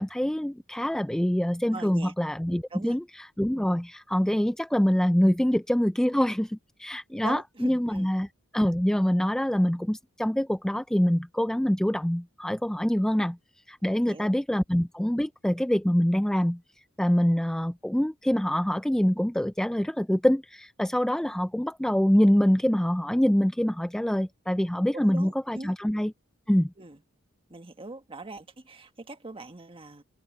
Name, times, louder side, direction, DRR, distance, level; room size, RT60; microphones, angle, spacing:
voice 1, 0.0-8.3 8.5-13.4 13.7-16.6 17.0-26.1 26.5-26.7, equal, 5° left, 0.3 m, -25 dB
voice 2, 1.7-2.1 2.7-3.0 3.6-3.8 7.2-8.1 13.9-14.6 24.9-25.7 26.8-27.0 27.5-30.0, right 2 dB, 25° right, 1.5 m, -41 dB
head